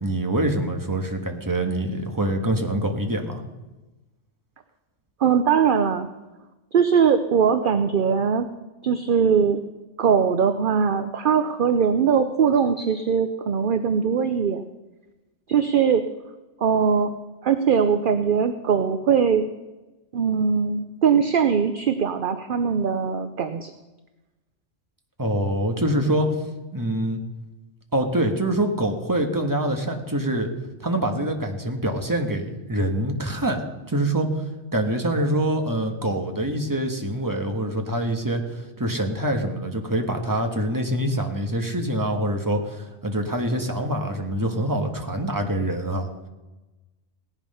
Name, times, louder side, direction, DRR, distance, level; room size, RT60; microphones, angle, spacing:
voice 1, 0.0-3.4 25.2-26.3 26.7-27.2 27.9-30.5 30.8-34.3 34.7-46.1, right 1 dB, 15° right, 3 dB, 1.5 m, -25 dB
voice 2, 5.2-6.1 6.7-8.5 8.8-9.6 10.0-14.6 15.5-16.0 16.6-17.1 17.4-19.4 20.1-23.7, right 6 dB, 55° right, 9 dB, 0.8 m, -21 dB
17.0 x 11.0 x 5.6 m, 1.1 s
omnidirectional pair, 1.2 m